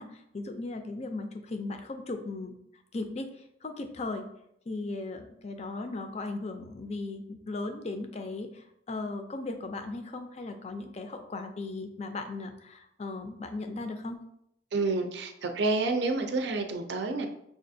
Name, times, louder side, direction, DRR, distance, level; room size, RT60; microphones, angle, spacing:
voice 1, 0.0-2.6 2.9-3.3 3.6-4.3 4.7-14.2, left 2 dB, 35° left, 7 dB, 0.4 m, -37 dB
voice 2, 14.7-17.3, right 3 dB, 65° right, 6 dB, 0.5 m, -29 dB
6.0 x 2.4 x 2.6 m, 0.76 s
head